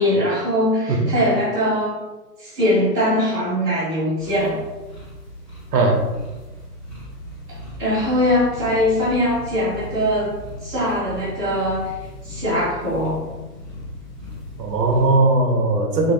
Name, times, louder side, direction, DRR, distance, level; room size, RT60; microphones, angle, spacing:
voice 1, 0.0-1.9 2.4-4.6 7.5-10.3 10.6-11.9 12.2-13.2, left 1 dB, 10° right, -17 dB, 0.8 m, -21 dB
sound 1, 4.2-15.1, left 1 dB, 30° left, 1.3 m, -37 dB
voice 2, 5.7-6.1 14.6-16.1, right 2 dB, 90° right, 2 dB, 0.8 m, -18 dB
2.9 x 2.6 x 2.4 m, 1.1 s
hypercardioid pair, 170°, 48 cm